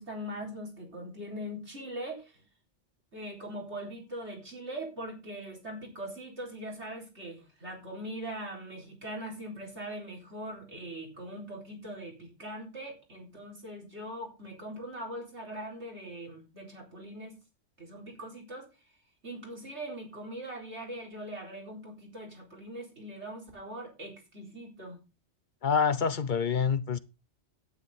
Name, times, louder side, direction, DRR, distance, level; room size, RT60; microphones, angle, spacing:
voice 1, 0.0-2.4 3.1-17.4 17.8-18.7 19.2-25.0, right 1 dB, 70° right, 4.4 m, -41 dB
voice 2, 25.6-27.0, left 6 dB, 45° left, 0.9 m, -26 dB
12.0 x 9.9 x 4.1 m
omnidirectional pair, 1.2 m